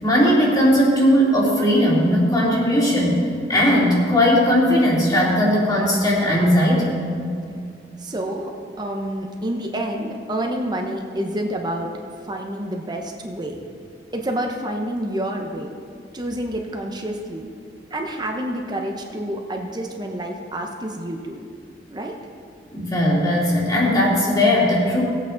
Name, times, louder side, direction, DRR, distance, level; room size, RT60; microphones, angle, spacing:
voice 1, 0.0-7.0 22.7-25.0, equal, 20° left, -5 dB, 2.8 m, -18 dB
voice 2, 8.0-11.9 12.3-13.6 14.1-15.7 16.1-17.5 17.9-21.4 21.9-22.2, right 1 dB, 25° right, 2 dB, 0.8 m, -28 dB
18.0 x 8.5 x 3.9 m, 2.3 s
head